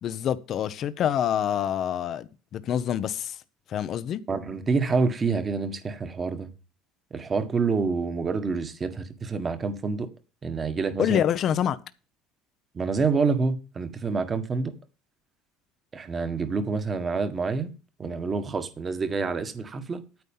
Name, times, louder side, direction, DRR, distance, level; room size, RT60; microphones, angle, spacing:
voice 1, 0.0-3.4 3.7-4.2 11.0-11.8, left 10 dB, 45° left, 0.8 m, -26 dB
voice 2, 4.3-6.5 7.1-10.1 10.4-11.2 12.7-14.7 15.9-17.7 18.0-20.0, right 4 dB, 25° right, 1.6 m, -27 dB
9.5 x 8.2 x 5.6 m
cardioid pair, 125°, 0 cm